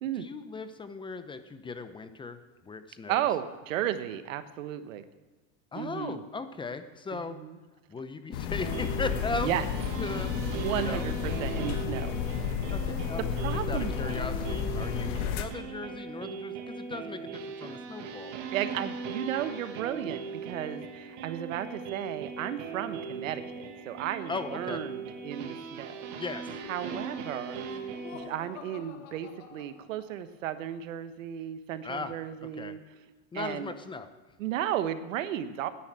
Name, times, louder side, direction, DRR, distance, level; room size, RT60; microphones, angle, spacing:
voice 1, 0.2-2.4 2.6-3.2 5.7-7.4 7.9-9.5 10.0-10.3 10.7-11.1 12.7-18.3 24.3-24.8 26.2-26.6 26.9-27.0 31.8-32.1 32.4-32.8 33.3-34.1, left 4 dB, 15° left, 10 dB, 0.7 m, -38 dB
voice 2, 3.1-5.0 5.7-6.2 7.1-7.6 9.4-9.7 10.0-12.1 13.3-14.3 18.5-26.1 26.7-27.7 28.1-32.8 33.3-33.7 34.4-35.7, right 11 dB, 90° right, 11 dB, 1.2 m, -34 dB
sound 1, 8.3-15.5, left 7 dB, 60° left, 1.5 m, -32 dB
sound 2, 8.6-28.3, right 5 dB, 55° right, 1.8 m, -39 dB
Laughter, 26.6-30.3, left 8 dB, 90° left, 1.7 m, -49 dB
10.5 x 9.7 x 8.7 m, 1.2 s
supercardioid pair, 135°, 38 cm